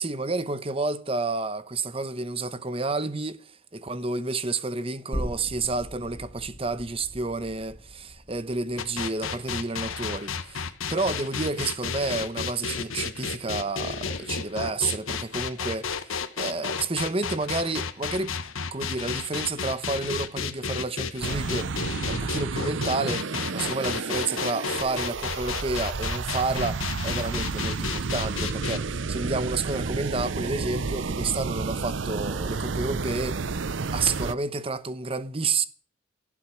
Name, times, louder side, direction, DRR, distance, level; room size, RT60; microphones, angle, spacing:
voice 1, 0.0-18.3 18.7-21.8 22.1-33.6 33.9-35.6, right 3 dB, 30° right, 0.9 m, -30 dB
sound 1, 5.1-12.4 12.8-12.9, equal, 15° left, 1.8 m, -40 dB
sound 2, 8.8-28.8, left 5 dB, 85° left, 1.4 m, -32 dB
sound 3, 21.2-34.3, right 4 dB, 65° right, 0.7 m, -31 dB
16.5 x 7.5 x 9.9 m
head